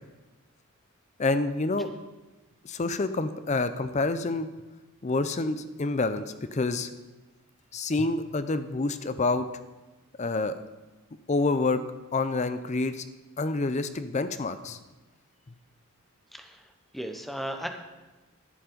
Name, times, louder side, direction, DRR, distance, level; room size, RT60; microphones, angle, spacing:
voice 1, 1.2-1.9 2.6-4.5 5.0-6.2 6.5-6.9 7.7-9.5 10.2-10.5 11.3-11.8 12.1-13.0 13.4-14.8, left 3 dB, 35° left, 11 dB, 0.5 m, -27 dB
voice 2, 16.9-17.7, equal, ahead, 5 dB, 0.8 m, -35 dB
11.5 x 7.2 x 5.1 m, 1.2 s
head